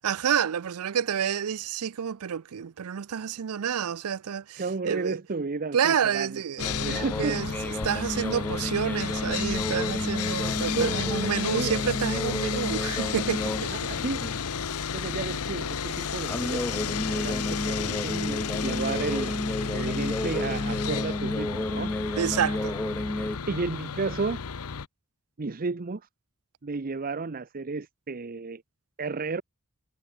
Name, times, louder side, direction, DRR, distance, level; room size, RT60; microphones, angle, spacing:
voice 1, 0.0-5.2 5.7-13.9 22.2-22.8, right 8 dB, 80° right, 0.5 m, -29 dB
voice 2, 4.6-7.4 10.7-11.7 13.7-14.2 14.9-19.4 19.7-22.2 23.5-24.4 25.4-26.1 26.6-28.6 29.0-29.4, right 4 dB, 40° right, 0.7 m, -33 dB
Sawing, 6.6-24.9, left 6 dB, 90° left, 0.9 m, -32 dB
sound 1, 6.6-13.7 14.0-14.4 16.3-23.4, left 1 dB, 10° left, 0.4 m, -32 dB
head